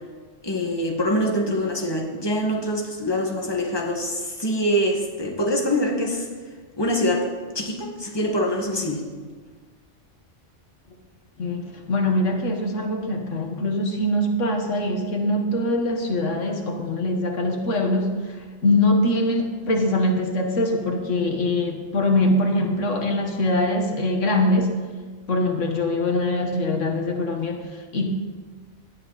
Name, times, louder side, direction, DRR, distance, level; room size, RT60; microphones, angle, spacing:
voice 1, 0.4-6.3 6.8-7.3 7.5-9.1, equal, 20° left, 1 dB, 1.8 m, -24 dB
voice 2, 11.4-24.8 25.3-28.1, left 1 dB, 85° left, 3 dB, 1.9 m, -23 dB
18.0 x 11.5 x 4.2 m, 1.5 s
omnidirectional pair, 1.2 m